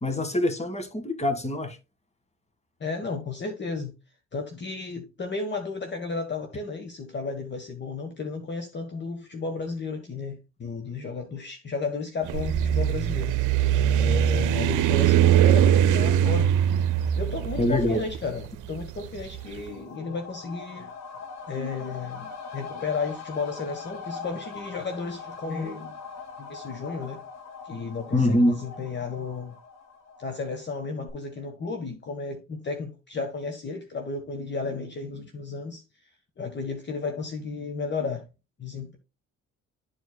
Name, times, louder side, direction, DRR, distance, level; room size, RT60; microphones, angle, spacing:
voice 1, 0.0-1.8 17.6-18.0 28.1-28.6, left 1 dB, 20° left, 1.8 m, -24 dB
voice 2, 2.8-3.9 4.3-13.4 14.0-16.5 17.2-20.9 21.5-26.0 26.4-27.2 27.6-29.5 30.2-35.8 36.4-38.2 38.6-39.0, left 4 dB, 35° left, 1.3 m, -33 dB
sound 1, 12.2-19.4, right 10 dB, 85° right, 0.7 m, -22 dB
sound 2, 19.3-30.8 31.1-31.2, left 5 dB, 60° left, 2.5 m, -42 dB
12.0 x 4.7 x 2.3 m
cardioid pair, 90°, 30 cm